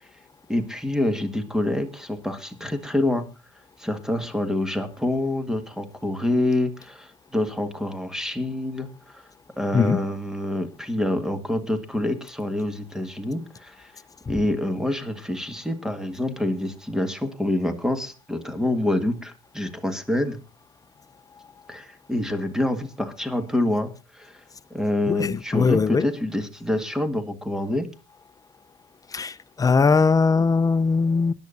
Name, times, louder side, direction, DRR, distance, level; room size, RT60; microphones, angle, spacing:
voice 1, 0.5-3.2 3.8-9.2 9.6-13.9 14.3-20.4 21.7-24.4 24.7-27.9, left 1 dB, 5° right, 10 dB, 1.8 m, -26 dB
voice 2, 25.1-26.0 29.1-31.3, left 4 dB, 20° left, 14 dB, 0.7 m, -20 dB
21.5 x 10.5 x 2.6 m, 0.33 s
supercardioid pair, 80°, 16 cm